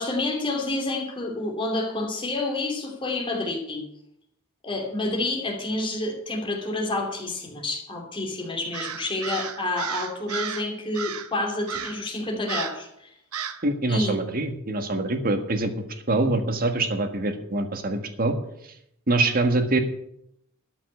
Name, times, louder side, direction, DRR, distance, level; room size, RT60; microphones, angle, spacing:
voice 1, 0.0-3.8 4.6-13.1 13.9-14.2, left 2 dB, 25° left, 1 dB, 2.8 m, -29 dB
Crow, 8.7-10.7 10.9-11.3 11.7-12.1 12.5-12.8 13.3-13.6, right 7 dB, 80° right, 1.0 m, -33 dB
voice 2, 13.6-15.7 16.1-18.3 19.1-19.8, right 2 dB, 40° right, 7 dB, 1.6 m, -24 dB
13.0 x 5.8 x 9.5 m, 0.78 s
head